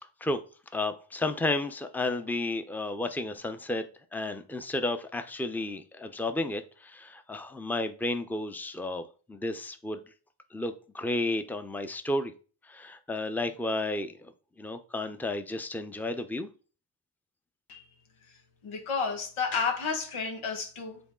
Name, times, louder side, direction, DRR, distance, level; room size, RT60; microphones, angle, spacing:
voice 1, 0.7-3.8 4.1-9.0 9.3-10.0 10.5-12.3 12.7-14.3 14.6-16.5, left 2 dB, 5° left, 0.7 m, -32 dB
voice 2, 18.6-21.0, left 5 dB, 85° left, 1.6 m, -31 dB
7.0 x 4.0 x 3.8 m
supercardioid pair, 50°, 48 cm